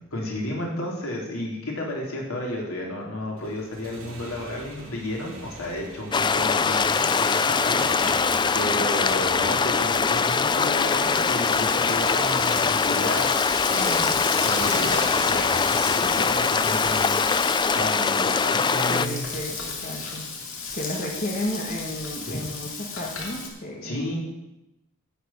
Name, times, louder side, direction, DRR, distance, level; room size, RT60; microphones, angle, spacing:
voice 1, 0.0-8.1 8.5-17.1 17.7-19.2 22.3-22.4 23.8-24.2, left 1 dB, 90° left, -2 dB, 3.8 m, -32 dB
Motorcycle, 3.4-18.5, right 2 dB, 70° right, 3.4 m, -42 dB
sound 1, 6.1-19.1, left 5 dB, 20° left, 0.4 m, -23 dB
Frying (food), 6.2-23.5, left 4 dB, 70° left, 2.6 m, -34 dB
voice 2, 18.9-20.2 20.7-24.1, left 1 dB, 40° left, -1 dB, 1.9 m, -33 dB
11.0 x 6.7 x 9.1 m, 0.95 s
head